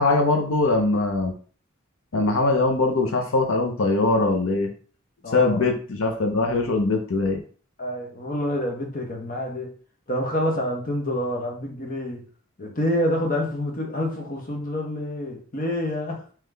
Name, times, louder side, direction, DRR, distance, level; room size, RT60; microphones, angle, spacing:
voice 1, 0.0-1.3 2.1-4.7 5.3-7.4, left 2 dB, 70° left, 0.7 m, -22 dB
voice 2, 5.2-5.6 7.8-9.7 10.1-12.2 12.6-16.2, left 1 dB, 40° left, 1.0 m, -27 dB
3.7 x 3.0 x 3.3 m
head